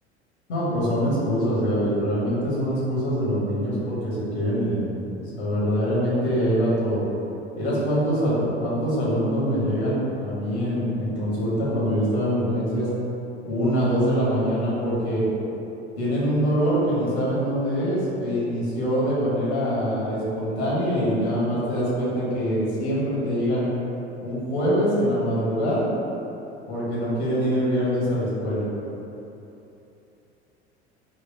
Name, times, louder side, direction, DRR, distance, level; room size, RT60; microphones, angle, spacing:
voice 1, 0.5-4.8 5.1-7.0 7.6-12.9 13.4-15.3 16.0-23.7 24.2-25.9 26.7-28.6, equal, 75° left, -8 dB, 1.1 m, -24 dB
4.0 x 2.2 x 2.6 m, 3.0 s
figure-of-eight pair, 70°, 34 cm